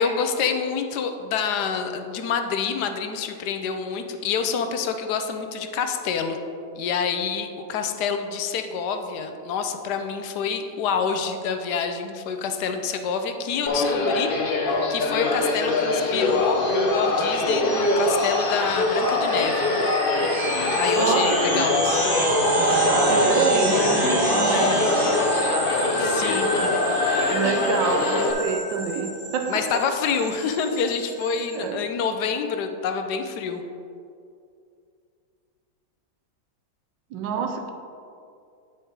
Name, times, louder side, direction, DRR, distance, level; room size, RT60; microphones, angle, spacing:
voice 1, 0.0-6.4 6.8-14.3 14.9-16.6 16.9-19.7 20.7-22.0 24.4-24.8 26.0-26.5 29.5-33.6, left 6 dB, 70° left, 7 dB, 1.1 m, -27 dB
sound 1, 13.7-28.3, left 2 dB, 55° left, 0.6 m, -23 dB
sound 2, 15.3-31.5, right 2 dB, 65° right, 2.6 m, -28 dB
voice 2, 20.9-21.6 22.9-25.0 26.6-26.8 27.2-29.9 31.5-31.8 37.1-37.7, right 5 dB, 85° right, 6 dB, 1.4 m, -27 dB
8.8 x 4.6 x 4.6 m, 2.4 s
omnidirectional pair, 1.9 m